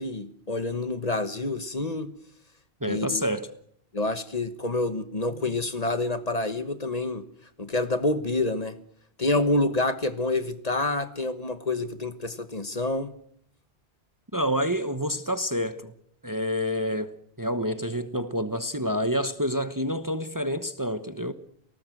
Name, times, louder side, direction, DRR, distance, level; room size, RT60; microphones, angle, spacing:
voice 1, 0.0-2.1 2.9-3.2 3.9-7.2 7.6-8.7 9.2-13.1, left 2 dB, 40° left, 1.3 m, -27 dB
voice 2, 2.8-3.5 14.3-15.9 16.2-21.3, equal, 20° right, 1.0 m, -28 dB
28.0 x 19.0 x 7.8 m
omnidirectional pair, 1.1 m